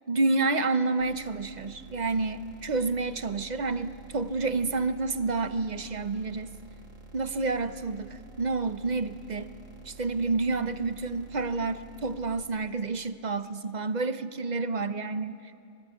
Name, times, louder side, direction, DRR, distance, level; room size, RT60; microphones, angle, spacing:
voice 1, 0.1-6.5 7.1-9.5 9.8-15.5, right 3 dB, 40° right, 12 dB, 0.7 m, -29 dB
sound 1, 1.0-12.4, right 2 dB, 80° right, 2.9 m, -50 dB
25.5 x 21.0 x 9.6 m, 2.4 s
omnidirectional pair, 1.4 m